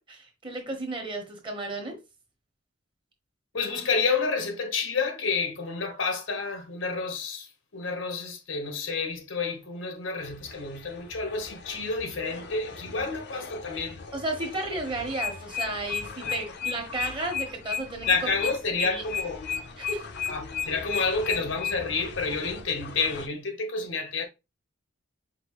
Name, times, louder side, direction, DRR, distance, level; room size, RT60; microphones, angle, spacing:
voice 1, 0.1-2.0 12.8-13.1 14.1-18.3 18.8-19.0 19.8-20.1, right 2 dB, 25° right, 1.2 m, -33 dB
voice 2, 3.5-14.0 16.2-16.3 18.1-19.4 20.3-24.2, left 4 dB, 85° left, 1.1 m, -29 dB
sound 1, 10.2-23.3, left 4 dB, 60° left, 0.7 m, -43 dB
sound 2, 15.2-21.8, left 6 dB, 10° left, 0.5 m, -31 dB
5.2 x 2.5 x 3.0 m
head